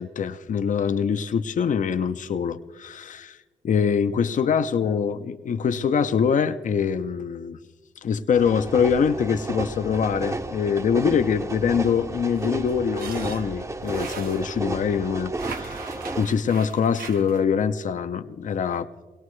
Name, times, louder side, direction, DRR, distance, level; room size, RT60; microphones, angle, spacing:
voice 1, 0.0-3.4 3.6-7.6 8.0-18.9, left 6 dB, 60° left, 10 dB, 0.6 m, -24 dB
sound 1, 8.3-16.3, right 2 dB, 20° right, 0.6 m, -33 dB
sound 2, 12.3-14.8 15.3-17.4, right 6 dB, 90° right, 0.8 m, -39 dB
21.0 x 17.5 x 3.2 m, 1.3 s
cardioid pair, 80°, 15 cm